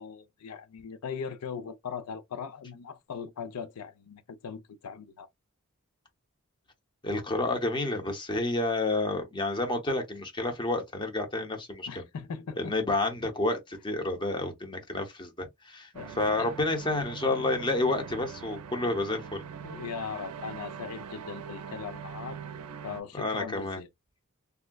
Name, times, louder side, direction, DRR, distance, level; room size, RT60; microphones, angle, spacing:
voice 1, 0.0-5.3 11.9-12.7 15.9-16.1 16.4-16.5 19.6-22.4 22.8-23.9, left 6 dB, 80° left, 0.5 m, -39 dB
voice 2, 7.0-12.0 12.6-19.4 23.1-23.8, left 2 dB, 20° left, 0.7 m, -30 dB
sound 1, 15.9-23.0, right 7 dB, 80° right, 0.4 m, -42 dB
3.5 x 2.1 x 2.2 m
head